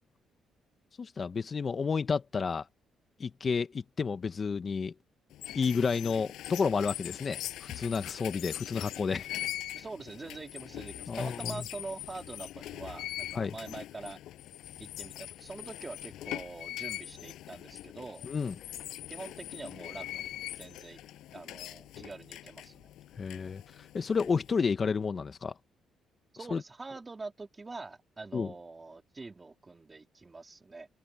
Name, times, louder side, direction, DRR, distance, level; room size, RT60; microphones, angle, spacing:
voice 1, 1.0-2.7 3.2-4.9 5.5-9.3 11.1-11.5 13.3-13.5 18.2-18.5 23.2-23.6 23.9-25.5 26.5-26.6 28.3-28.5, left 5 dB, 40° left, 1.4 m, -31 dB
sound 1, 5.3-24.6, left 14 dB, 85° left, 6.8 m, -42 dB
voice 2, 9.7-14.2 14.8-18.3 19.1-21.0 21.3-22.9 26.3-30.9, right 3 dB, 25° right, 3.8 m, -44 dB
cardioid pair, 90°, 0 cm